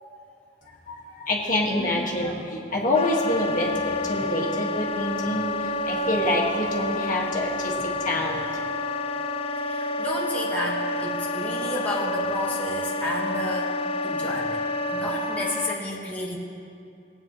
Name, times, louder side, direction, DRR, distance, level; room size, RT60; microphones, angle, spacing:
voice 1, 0.9-8.5, left 1 dB, 50° left, -3 dB, 1.7 m, -27 dB
Wind instrument woodwind instrument, 2.9-15.8, left 1 dB, 35° left, 0.4 m, -29 dB
voice 2, 9.6-13.7 14.0-14.6 14.9-16.4, left 1 dB, 10° left, -5 dB, 1.4 m, -31 dB
20.5 x 9.1 x 3.0 m, 2.5 s
head